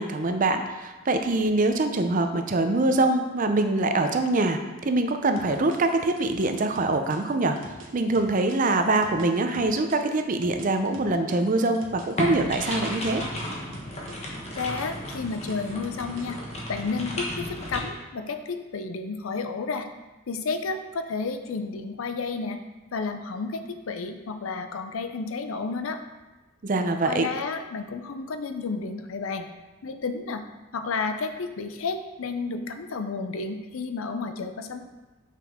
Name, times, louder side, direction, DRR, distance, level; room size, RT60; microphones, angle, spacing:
voice 1, 0.0-7.6 7.9-13.2 26.6-27.3, right 2 dB, 40° right, 7 dB, 0.5 m, -24 dB
sound 1, 5.4-10.0 10.4-13.5 13.7-16.5, right 3 dB, 70° right, 1.1 m, -46 dB
sound 2, 12.2-17.8, equal, 30° left, 1.1 m, -33 dB
voice 2, 14.6-16.4 16.7-19.9 20.3-22.6 22.9-26.0 27.0-29.5 29.8-30.4 30.7-34.8, left 4 dB, 85° left, 8 dB, 0.5 m, -31 dB
5.9 x 5.9 x 3.6 m, 1.1 s
head